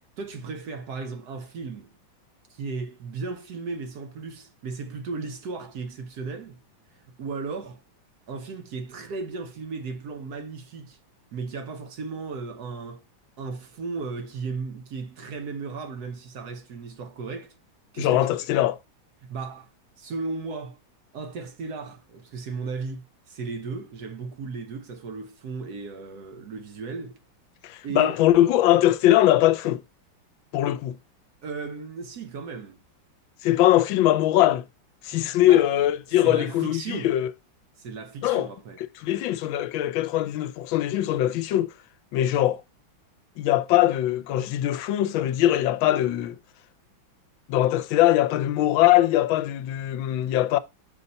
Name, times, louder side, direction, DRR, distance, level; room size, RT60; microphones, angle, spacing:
voice 1, 0.2-1.9 2.5-6.6 6.9-7.8 8.3-11.0 11.3-13.0 13.4-17.5 17.9-18.3 18.6-18.7 19.2-19.7 20.0-20.8 21.1-27.2 27.8-28.2 31.4-32.8 35.1-35.7 36.2-37.1 37.8-38.8, right 4 dB, 65° right, 1.1 m, -35 dB
voice 2, 18.0-18.8 27.6-29.8 30.5-31.0 33.4-34.6 35.0-37.3 38.2-38.5 39.0-41.7 42.1-42.6 43.4-46.4 47.5-50.6, left 13 dB, 80° left, 1.3 m, -21 dB
5.7 x 4.1 x 5.2 m
omnidirectional pair, 2.2 m